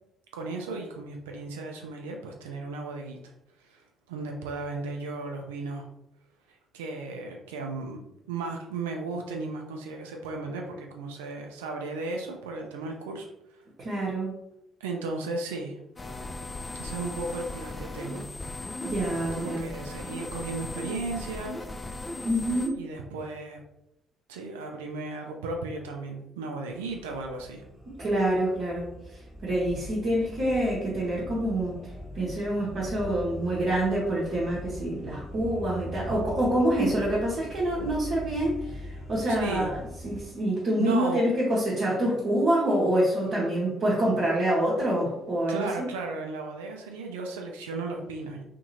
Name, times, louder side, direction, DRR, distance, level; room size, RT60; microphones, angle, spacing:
voice 1, 0.3-3.2 3.6-5.9 6.5-8.0 8.3-13.3 13.5-13.6 14.8-15.8 16.8-18.3 19.4-21.6 22.7-23.6 24.3-27.6 39.3-39.7 40.8-41.2 41.7-41.8 45.5-48.4, right 3 dB, 75° right, 2 dB, 0.3 m, -35 dB
voice 2, 13.8-14.3 18.8-19.7 22.2-22.8 27.9-45.9, right 1 dB, 55° right, -7 dB, 0.8 m, -27 dB
sound 1, 16.0-22.7, left 2 dB, 25° left, 0.4 m, -37 dB
sound 2, 26.7-40.2, equal, ahead, 0.8 m, -41 dB
2.7 x 2.5 x 2.7 m, 0.84 s
figure-of-eight pair, 45°, 0 cm